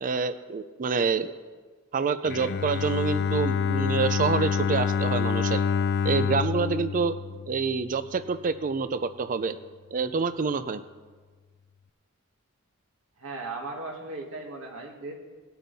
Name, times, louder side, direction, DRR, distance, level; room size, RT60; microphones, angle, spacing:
voice 1, 0.0-1.3 1.9-5.6 6.0-7.1 7.5-9.6 9.9-10.8, right 5 dB, 40° right, 13 dB, 0.5 m, -27 dB
Bowed string instrument, 2.2-8.2, left 6 dB, 50° left, 0.3 m, -27 dB
voice 2, 13.2-15.1, right 3 dB, 65° right, 0 dB, 2.0 m, -37 dB
19.0 x 7.9 x 4.1 m, 1.4 s
head